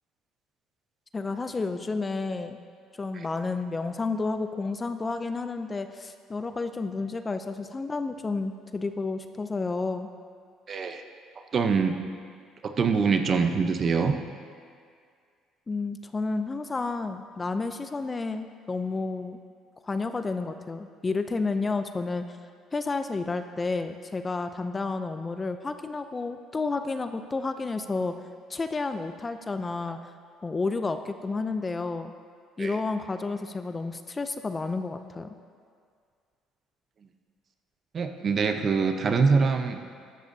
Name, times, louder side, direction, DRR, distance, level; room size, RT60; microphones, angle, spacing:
voice 1, 1.1-2.6 3.0-10.1 15.7-19.4 19.8-22.4 22.7-28.1 28.5-30.0 30.4-32.1 32.6-35.3, left 3 dB, 20° left, 8 dB, 0.4 m, -31 dB
voice 2, 10.7-11.0 11.5-12.0 12.6-14.1 32.6-32.8 37.9-39.8, right 5 dB, 40° right, 6 dB, 0.8 m, -24 dB
13.5 x 12.0 x 2.7 m, 2.1 s
cardioid pair, 125°, 0 cm